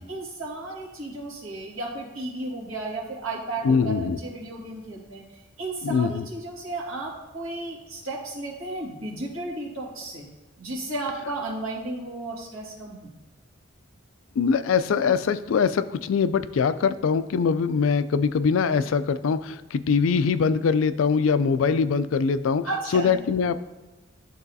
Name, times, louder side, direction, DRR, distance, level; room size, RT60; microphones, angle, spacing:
voice 1, 0.1-5.2 5.6-10.3 10.6-13.1 22.7-23.2, right 2 dB, 85° right, -4 dB, 2.0 m, -34 dB
voice 2, 3.6-4.2 5.8-6.3 14.4-22.7 22.9-23.6, left 5 dB, 80° left, 13 dB, 0.4 m, -22 dB
11.0 x 3.9 x 2.7 m, 1.2 s
head